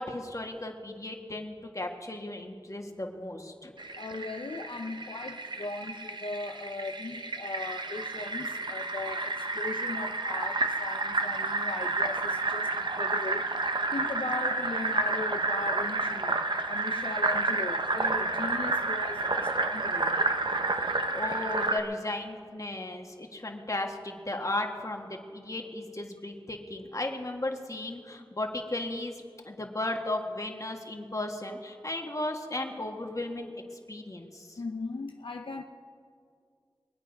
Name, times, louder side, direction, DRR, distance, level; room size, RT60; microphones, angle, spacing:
voice 1, 0.0-3.7 21.1-34.6, left 2 dB, 40° left, 3 dB, 1.6 m, -35 dB
Fill (with liquid), 3.8-21.8, right 3 dB, 60° right, 0.9 m, -30 dB
voice 2, 4.0-13.4 13.9-16.3 16.7-20.2 34.6-35.6, left 3 dB, 80° left, 4 dB, 0.7 m, -38 dB
23.0 x 8.9 x 5.3 m, 2.3 s
wide cardioid pair, 55°, 9 cm